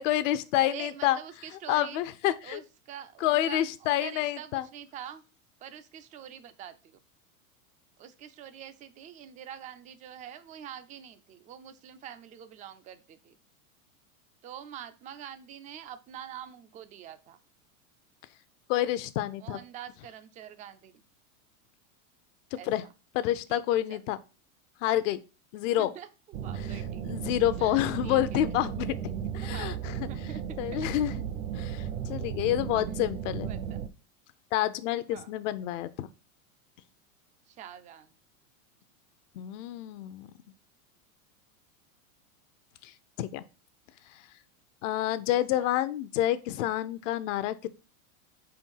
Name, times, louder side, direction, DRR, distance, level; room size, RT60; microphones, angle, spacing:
voice 1, 0.0-1.2 1.7-2.6 3.2-4.7 18.7-19.6 22.5-22.8 23.1-24.2 24.8-25.2 25.5-25.9 27.0-29.7 30.0-30.1 30.6-31.2 31.6-33.5 34.5-36.1 39.4-40.3 42.8-42.9 43.2-43.4 44.8-47.7, left 13 dB, 60° left, 0.7 m, -28 dB
voice 2, 0.5-2.0 2.4-5.2 5.6-7.0 8.0-13.4 14.4-17.4 19.4-21.0 22.5-22.9 23.5-24.0 25.8-27.0 27.6-28.4 29.4-30.6 32.7-33.1 33.4-33.8 35.1-35.3 37.5-38.1 45.3-45.7, right 9 dB, 20° right, 0.4 m, -45 dB
sound 1, 26.3-33.9, right 8 dB, 60° right, 1.0 m, -35 dB
4.5 x 4.4 x 5.5 m
supercardioid pair, 130°, 42 cm